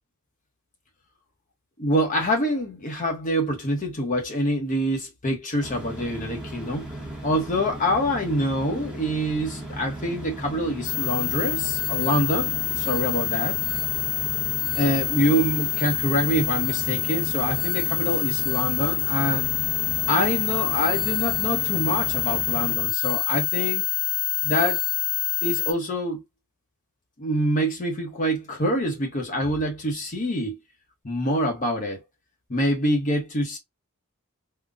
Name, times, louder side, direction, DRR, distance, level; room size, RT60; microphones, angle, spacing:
voice 1, 1.8-6.9 7.2-13.6 14.8-19.5 20.1-23.8 24.4-24.8 25.4-26.2 27.2-30.6 31.0-32.0 32.5-33.6, equal, 35° left, 0.9 m, -25 dB
sound 1, 5.6-22.8, right 1 dB, 5° right, 1.0 m, -37 dB
sound 2, 10.8-25.7, left 13 dB, 75° left, 1.3 m, -26 dB
3.8 x 2.2 x 2.4 m
head